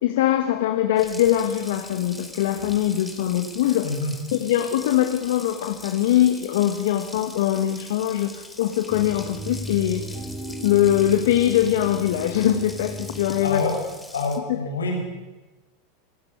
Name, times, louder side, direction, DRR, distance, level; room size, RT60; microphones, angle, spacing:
voice 1, 0.0-3.9 4.3-10.1 10.6-13.6 14.5-14.6, left 12 dB, 70° left, 7 dB, 2.0 m, -22 dB
Water tap faucet, 1.0-14.4, left 1 dB, 5° left, 4.3 m, -42 dB
voice 2, 3.8-4.1 13.4-13.7 14.1-15.0, left 3 dB, 85° left, 1 dB, 6.7 m, -26 dB
sound 1, 8.9-13.9, right 1 dB, 15° right, 3.8 m, -36 dB
28.5 x 16.0 x 9.9 m, 1.1 s
hypercardioid pair, 90°, 0 cm